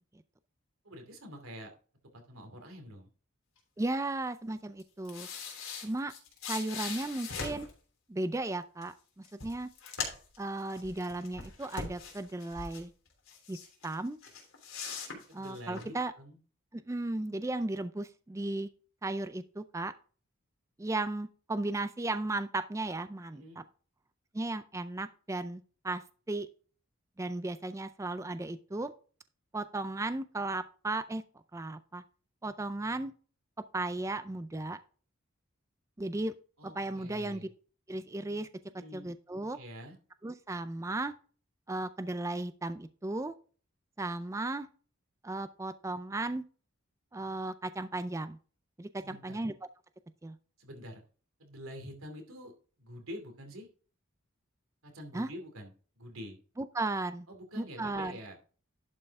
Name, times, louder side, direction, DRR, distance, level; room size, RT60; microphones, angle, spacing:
voice 1, 0.8-1.7 2.1-3.1 15.3-16.4 23.3-23.6 36.6-37.5 38.7-39.1 39.5-40.0 49.0-49.4 50.6-51.0 51.4-53.7 54.8-55.7 56.0-56.4 57.3-58.4, equal, 80° right, 4 dB, 2.7 m, -46 dB
voice 2, 3.8-5.3 5.8-6.1 6.5-7.7 8.1-9.7 10.4-12.9 13.5-13.6 13.8-14.2 15.3-16.1 16.7-18.7 19.0-19.9 20.8-23.6 24.3-26.0 26.3-26.5 27.2-28.9 29.5-31.2 31.5-32.0 32.4-33.1 33.7-34.8 36.0-36.3 36.6-37.5 37.9-38.5 38.7-39.6 40.2-41.1 41.7-43.3 44.0-44.7 45.2-46.4 47.1-48.4 48.8-49.5 50.2-50.4 55.1-55.3 56.6-57.3 57.6-58.2, right 2 dB, 15° right, 12 dB, 0.4 m, -35 dB
sound 1, 4.8-7.7 8.8-8.9 9.2-10.4 10.7-12.8 13.3-13.9 14.2-15.8, left 5 dB, 75° left, 3.2 m, -41 dB
11.0 x 5.4 x 3.6 m, 0.40 s
head